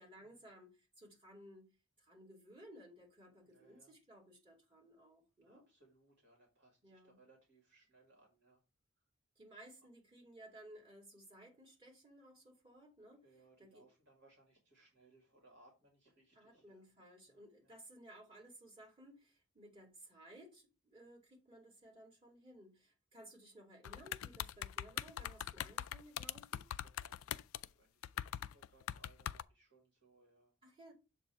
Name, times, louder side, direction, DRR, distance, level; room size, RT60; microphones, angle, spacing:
voice 1, 0.0-1.7 2.0-5.6 6.8-7.2 9.4-13.2 13.6-13.8 16.3-26.6 30.6-30.9, right 1 dB, 25° right, 2.7 m, -58 dB
voice 2, 3.4-4.0 5.4-8.6 13.2-16.9 17.2-17.8 26.6-27.3 27.7-30.6, right 2 dB, 55° right, 2.1 m, -68 dB
sound 1, 23.8-27.7 28.0-29.4, left 11 dB, 75° left, 0.3 m, -42 dB
7.1 x 2.7 x 5.7 m
head